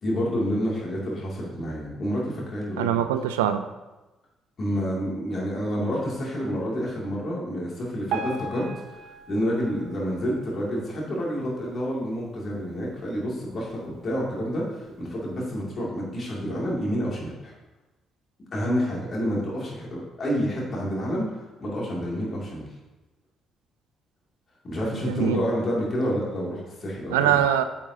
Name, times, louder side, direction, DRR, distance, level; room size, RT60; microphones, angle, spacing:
voice 1, 0.0-3.1 4.6-8.7 9.3-17.5 18.5-22.7 24.6-27.4, equal, 50° left, -4 dB, 2.5 m, -28 dB
voice 2, 2.8-3.6 25.1-25.4 27.1-27.6, right 10 dB, 85° right, 10 dB, 0.3 m, -22 dB
Piano, 8.1-11.2 11.7-11.9 12.2-12.3 13.0-13.1 13.7-13.8, right 4 dB, 70° right, 0.8 m, -37 dB
8.8 x 5.6 x 2.8 m, 1.1 s
hypercardioid pair, 45°, 0 cm